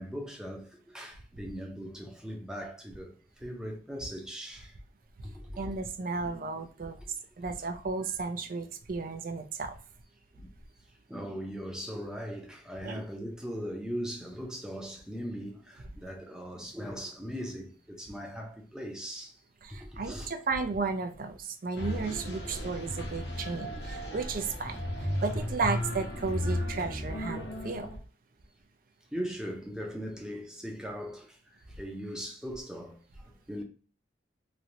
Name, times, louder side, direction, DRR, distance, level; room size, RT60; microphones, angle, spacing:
voice 1, 0.0-4.8 5.2-5.7 7.0-7.1 7.4-7.7 10.3-10.5 11.1-19.4 19.7-20.3 23.3-23.5 25.1-25.3 27.6-27.7 29.1-33.6, equal, 5° right, 0.6 m, -40 dB
voice 2, 5.6-9.8 12.8-13.0 19.6-27.9, right 4 dB, 50° right, 0.5 m, -34 dB
sound 1, 21.8-28.0, left 1 dB, 60° left, 0.9 m, -35 dB
3.1 x 2.7 x 2.5 m
head